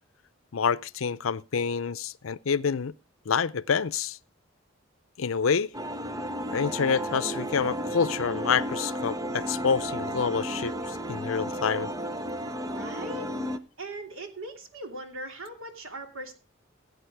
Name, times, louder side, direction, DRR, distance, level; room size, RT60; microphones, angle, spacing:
voice 1, 0.5-2.9 3.3-4.2 5.2-5.7 6.5-11.9, left 6 dB, 90° left, 0.6 m, -27 dB
sound 1, 5.7-13.6, equal, 15° right, 0.8 m, -33 dB
voice 2, 12.6-13.3 13.8-16.3, right 2 dB, 90° right, 2.9 m, -39 dB
16.0 x 8.5 x 4.9 m
head